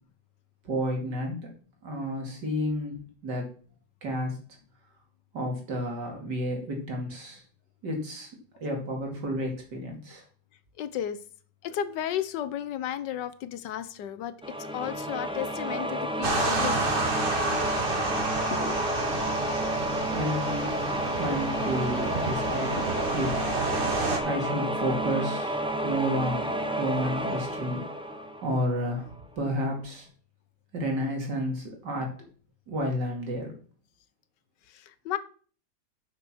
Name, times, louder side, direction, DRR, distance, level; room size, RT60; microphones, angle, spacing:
voice 1, 0.6-1.5 1.8-3.5 4.0-4.4 5.3-7.4 7.8-8.3 8.6-10.2 20.1-20.8 21.2-22.9 23.1-24.0 24.2-26.5 26.8-27.8 28.4-30.1 30.7-32.1 32.7-33.5, equal, 70° right, 1 dB, 3.1 m, -31 dB
voice 2, 10.8-11.2 11.6-17.1 17.9-18.0 18.5-18.9 34.7-35.2, left 10 dB, 80° left, 14 dB, 1.4 m, -34 dB
sound 1, 14.4-29.0, right 1 dB, 5° right, 0.5 m, -31 dB
sound 2, 16.2-24.2, right 3 dB, 35° right, 1.2 m, -30 dB
8.4 x 6.1 x 6.1 m, 0.43 s
omnidirectional pair, 1.9 m